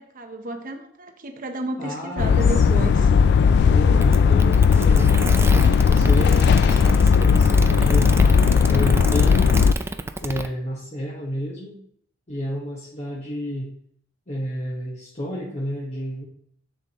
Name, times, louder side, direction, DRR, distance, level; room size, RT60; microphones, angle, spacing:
voice 1, 0.0-3.1, right 1 dB, 45° right, 5 dB, 0.8 m, -32 dB
voice 2, 1.8-2.8 3.7-8.3 8.7-9.6 10.2-11.8 12.3-13.7 14.3-16.2, equal, 35° left, -4 dB, 1.2 m, -31 dB
sound 1, 2.2-9.7, left 6 dB, 55° left, 0.3 m, -16 dB
sound 2, 4.0-10.5, right 2 dB, 15° right, 0.4 m, -29 dB
7.3 x 7.2 x 3.0 m, 0.66 s
head